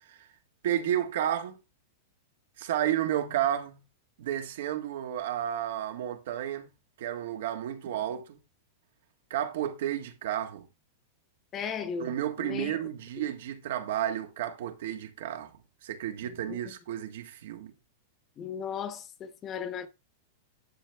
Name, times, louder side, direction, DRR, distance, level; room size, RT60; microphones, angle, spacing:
voice 1, 0.6-1.6 2.6-3.8 4.2-6.7 7.0-8.4 9.3-10.7 12.0-15.5 15.8-17.7, right 11 dB, 65° right, 1.7 m, -32 dB
voice 2, 11.5-12.8 13.2-13.3 16.5-16.7 18.4-19.9, left 7 dB, 20° left, 1.1 m, -36 dB
11.5 x 6.9 x 3.5 m
supercardioid pair, 165°, 0 cm